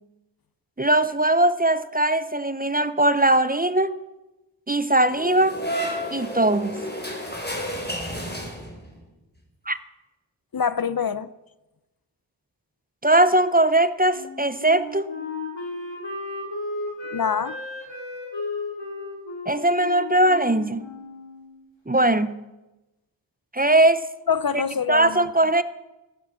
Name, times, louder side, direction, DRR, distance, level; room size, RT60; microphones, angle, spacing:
voice 1, 0.8-3.9 4.7-5.6 6.1-6.8 9.7-9.8 13.0-15.1 19.5-20.8 21.9-22.3 23.5-24.1 24.9-25.6, right 1 dB, 20° right, 0.7 m, -20 dB
sound 1, 5.1-9.0, equal, 20° left, 3.4 m, -31 dB
voice 2, 10.5-11.3 17.1-17.6 24.3-25.3, left 6 dB, 55° left, 0.6 m, -25 dB
Wind instrument woodwind instrument, 14.1-21.6, left 2 dB, 80° left, 4.6 m, -34 dB
15.5 x 8.5 x 7.5 m
wide cardioid pair, 45°, 44 cm